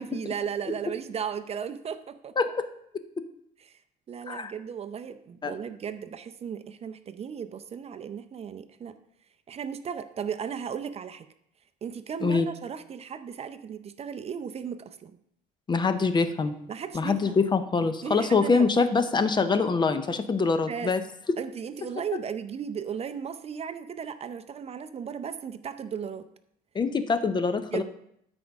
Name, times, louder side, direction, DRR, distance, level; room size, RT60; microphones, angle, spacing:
voice 1, 0.0-2.3 3.6-3.8 4.1-9.0 9.5-11.3 11.8-15.2 16.7-17.4 18.0-18.7 20.7-20.9 21.4-26.3 27.7-27.8, right 7 dB, 35° right, 10 dB, 0.5 m, -35 dB
voice 2, 15.7-16.5 16.9-21.0 26.7-27.8, left 4 dB, 25° left, 10 dB, 0.6 m, -24 dB
12.5 x 5.2 x 3.5 m, 0.74 s
cardioid pair, 115°, 18 cm